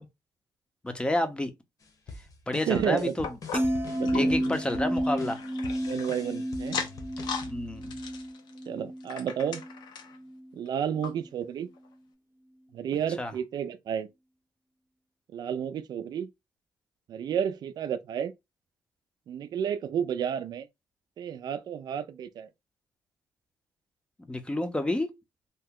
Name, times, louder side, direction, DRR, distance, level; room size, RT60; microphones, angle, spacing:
voice 1, 0.8-1.5 2.5-3.3 4.1-5.4 7.5-8.0 13.2-13.3 24.3-25.1, left 1 dB, 15° left, 0.6 m, -29 dB
sound 1, 1.8-8.3, left 3 dB, 50° left, 0.9 m, -45 dB
voice 2, 2.7-3.2 3.9-4.6 5.8-6.8 8.7-9.6 10.5-11.7 12.7-14.1 15.3-16.3 17.1-18.3 19.3-20.7 21.2-22.5, right 8 dB, 65° right, 0.4 m, -31 dB
sound 2, 3.2-6.2 6.6-7.5 7.8-10.2 10.7-10.8 11.0-11.1 11.8-11.9, left 6 dB, 85° left, 0.7 m, -38 dB
sound 3, 3.5-9.8 10.1-10.5, equal, 25° right, 0.6 m, -31 dB
2.8 x 2.1 x 3.6 m
cardioid pair, 100°, 7 cm